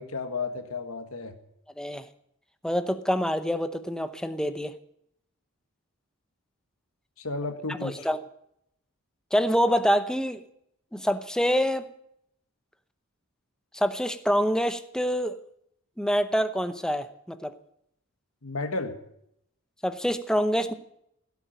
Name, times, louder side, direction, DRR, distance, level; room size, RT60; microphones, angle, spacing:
voice 1, 0.0-1.4 7.2-8.1 18.4-19.0, left 3 dB, 85° left, 7 dB, 1.8 m, -33 dB
voice 2, 2.6-4.7 7.8-8.2 9.3-10.4 10.9-11.9 13.7-15.4 16.0-17.6 19.8-20.7, equal, 5° left, 10 dB, 0.8 m, -26 dB
16.5 x 8.3 x 9.1 m, 0.75 s
head